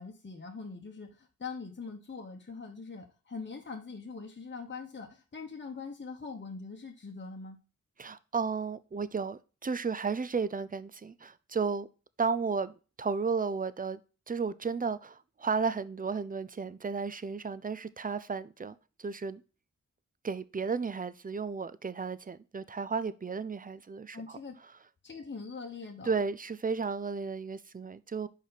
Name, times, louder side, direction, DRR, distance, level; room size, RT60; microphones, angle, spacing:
voice 1, 0.0-7.6 24.1-24.6 25.0-26.1, left 4 dB, 35° left, 1.3 m, -42 dB
voice 2, 8.0-11.9 12.2-14.0 14.3-19.4 20.2-24.4 26.1-28.3, right 5 dB, 25° right, 0.6 m, -33 dB
5.4 x 5.0 x 5.8 m
cardioid pair, 50°, 31 cm